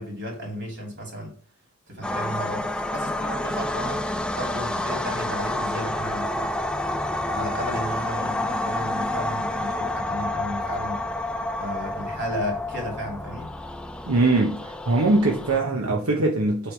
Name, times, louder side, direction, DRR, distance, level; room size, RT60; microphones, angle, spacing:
voice 1, 0.0-1.3 1.9-4.0 4.3-6.6 7.2-11.0 11.6-13.5, equal, 55° right, 3.2 m, -34 dB
sound 1, 2.0-15.6, left 1 dB, 5° left, 0.3 m, -29 dB
voice 2, 14.1-16.7, right 2 dB, 85° right, 1.0 m, -22 dB
7.9 x 3.5 x 4.5 m
head